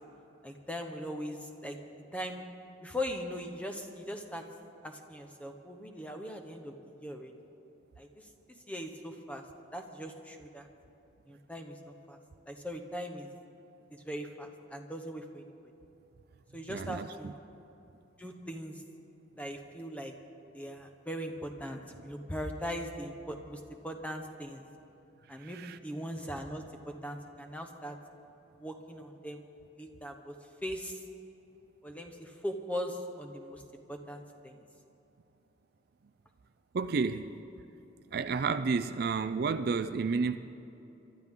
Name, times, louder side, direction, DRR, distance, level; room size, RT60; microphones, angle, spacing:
voice 1, 0.4-1.8 2.1-2.4 2.8-4.5 4.8-7.3 8.0-8.3 8.7-9.4 9.7-10.7 11.3-12.2 12.5-13.3 13.9-15.4 16.5-17.3 18.2-18.8 19.4-20.1 20.5-24.7 25.3-28.0 28.6-29.4 29.8-30.3 30.6-31.0 31.8-33.6 33.9-34.6, equal, 10° left, 4 dB, 1.0 m, -40 dB
voice 2, 16.7-17.3 25.4-25.8 36.7-37.3 38.1-40.4, right 5 dB, 55° right, 11 dB, 0.4 m, -31 dB
24.0 x 12.5 x 3.7 m, 2.9 s
head